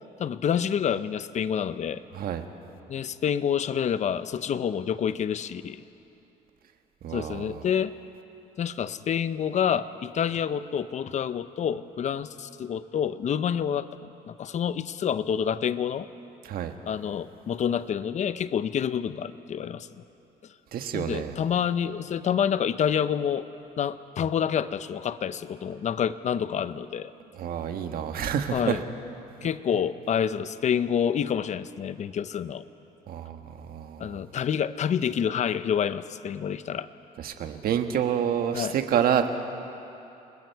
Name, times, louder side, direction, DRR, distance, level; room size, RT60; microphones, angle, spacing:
voice 1, 0.2-2.0 2.9-5.8 7.1-7.9 8.6-13.9 14.3-16.1 16.9-20.0 20.9-23.5 23.8-27.1 28.5-28.8 29.4-32.6 34.0-36.9 38.5-38.7, left 8 dB, 45° left, 14 dB, 0.7 m, -28 dB
voice 2, 2.1-2.4 7.0-7.6 16.4-16.7 20.7-21.3 27.3-28.8 33.1-34.2 37.2-39.4, right 8 dB, 60° right, 6 dB, 1.5 m, -28 dB
29.5 x 20.5 x 4.7 m, 2.9 s
cardioid pair, 110°, 17 cm